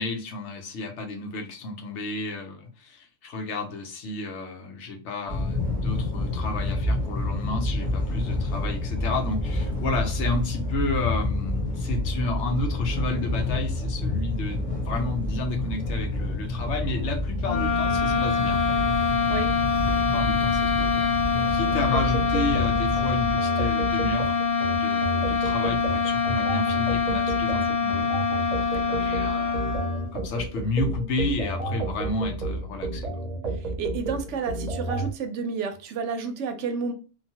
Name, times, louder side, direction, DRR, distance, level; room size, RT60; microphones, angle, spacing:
voice 1, 0.0-18.6 19.9-21.1 21.5-24.4 24.8-28.1 28.9-29.8 30.1-33.3, left 3 dB, 70° left, 3 dB, 1.0 m, -31 dB
sound 1, 5.3-23.4, left 2 dB, 10° left, 0.7 m, -28 dB
sound 2, 17.4-30.1, left 5 dB, 50° left, 0.7 m, -25 dB
sound 3, 21.9-35.1, right 2 dB, 40° right, 0.6 m, -31 dB
voice 2, 28.7-29.1 33.5-36.9, right 5 dB, 70° right, 7 dB, 0.8 m, -31 dB
3.0 x 2.2 x 2.8 m, 0.36 s
omnidirectional pair, 1.3 m